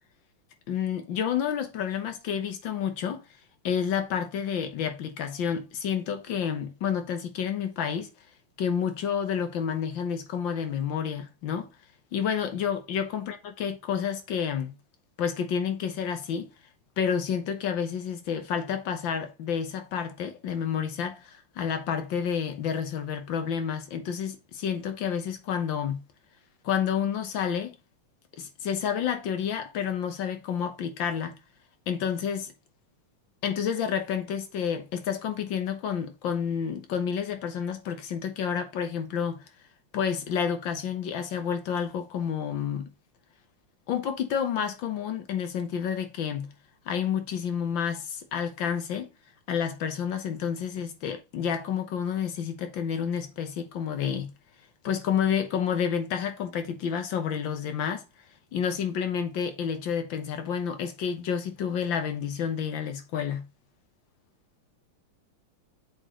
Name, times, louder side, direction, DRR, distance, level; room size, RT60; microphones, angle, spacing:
voice 1, 0.7-3.2 3.6-8.1 8.6-11.7 12.1-14.8 15.2-16.5 17.0-26.0 26.6-27.8 28.4-31.4 31.9-32.5 33.4-39.4 39.9-42.9 43.9-46.5 46.8-49.1 49.5-54.3 54.8-58.0 58.5-63.5, left 7 dB, 65° left, 1.7 m, -29 dB
7.8 x 4.4 x 3.0 m
omnidirectional pair, 2.4 m